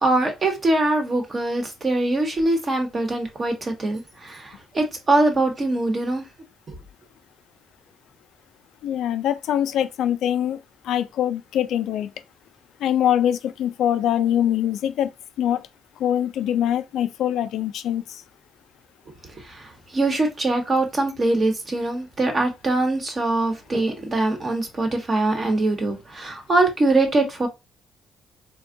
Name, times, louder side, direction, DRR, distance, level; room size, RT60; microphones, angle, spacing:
voice 1, 0.0-6.2 6.7-6.8 19.5-27.5, right 2 dB, 35° right, 1.1 m, -23 dB
voice 2, 8.8-10.6 10.8-12.1 12.8-15.1 15.4-15.7 16.0-18.2, left 10 dB, 80° left, 0.3 m, -23 dB
3.5 x 2.2 x 2.5 m
cardioid pair, 90°, 0 cm